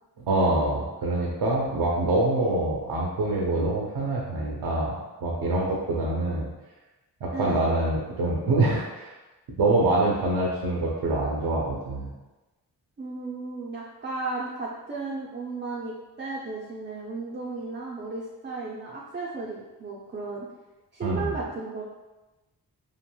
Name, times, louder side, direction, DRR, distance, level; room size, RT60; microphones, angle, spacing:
voice 1, 0.2-6.5 7.2-9.1 9.6-12.1 21.0-21.4, right 2 dB, 80° right, -3 dB, 0.6 m, -25 dB
voice 2, 7.3-7.6 13.0-20.5 20.9-21.8, right 3 dB, 30° right, -4 dB, 0.4 m, -34 dB
3.0 x 2.5 x 2.2 m, 1.1 s
cardioid pair, 55°, 39 cm